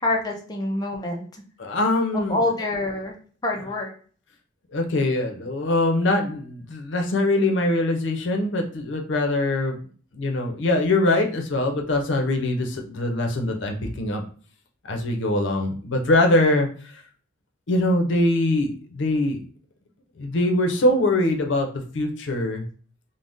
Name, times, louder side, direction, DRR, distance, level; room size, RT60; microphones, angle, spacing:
voice 1, 0.0-1.4 2.1-3.1 3.4-3.9, left 2 dB, 20° left, -1 dB, 0.4 m, -26 dB
voice 2, 1.6-2.4 4.7-9.8 10.1-14.2 14.8-16.7 17.7-19.4 20.2-21.7 21.9-22.6, left 2 dB, 75° left, 3 dB, 0.6 m, -22 dB
2.5 x 2.1 x 3.4 m, 0.42 s
head